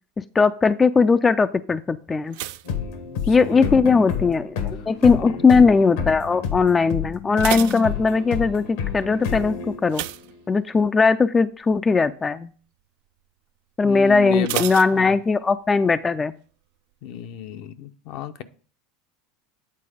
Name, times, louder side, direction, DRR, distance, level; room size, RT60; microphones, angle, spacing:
voice 1, 0.2-2.4 3.3-4.6 4.9-10.0 10.5-12.5 13.8-16.3, left 4 dB, 20° left, 11 dB, 0.3 m, -19 dB
sound 1, 2.3-3.8 4.0-4.6 5.2-5.5 5.8-5.9 6.3-6.4 7.1-8.6 9.9-11.0 11.4-11.6 12.0-12.1 14.4-15.7 15.9-16.0, right 15 dB, 70° right, 0.4 m, -32 dB
sound 2, 2.7-10.3, left 7 dB, 75° left, 1.4 m, -30 dB
voice 2, 2.7-3.8 4.1-4.3 5.1-5.4 13.8-14.6 14.9-15.2 17.0-18.4, left 7 dB, 60° left, 9 dB, 0.7 m, -33 dB
8.6 x 4.1 x 4.9 m, 0.41 s
supercardioid pair, 105°, 0 cm